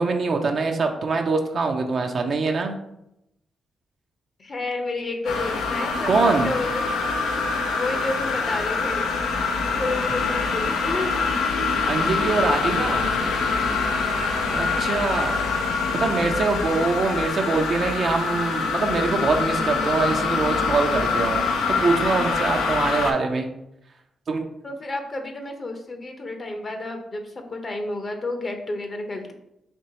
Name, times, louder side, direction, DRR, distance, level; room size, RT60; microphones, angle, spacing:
voice 1, 0.0-2.7 6.1-6.5 11.8-13.1 14.5-15.4 16.0-23.5 24.3-24.4, right 4 dB, 60° right, 3 dB, 0.5 m, -23 dB
voice 2, 4.4-6.9 7.7-9.1 9.8-11.1 14.7-15.1 24.6-29.3, left 2 dB, 45° left, 5 dB, 0.8 m, -31 dB
sound 1, 5.2-23.1, left 4 dB, 90° left, 0.5 m, -25 dB
4.3 x 2.9 x 2.8 m, 0.83 s
supercardioid pair, 55°, 0 cm